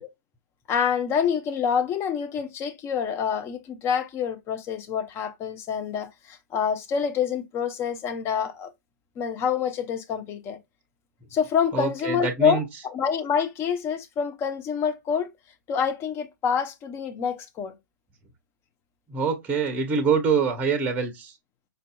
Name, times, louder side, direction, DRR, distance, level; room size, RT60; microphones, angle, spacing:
voice 1, 0.7-8.7 9.2-10.6 11.3-15.3 15.7-17.7, left 7 dB, 25° left, 0.7 m, -27 dB
voice 2, 11.7-12.6 19.1-21.3, right 5 dB, 15° right, 0.8 m, -25 dB
5.2 x 2.6 x 2.2 m
hypercardioid pair, 130°, 11 cm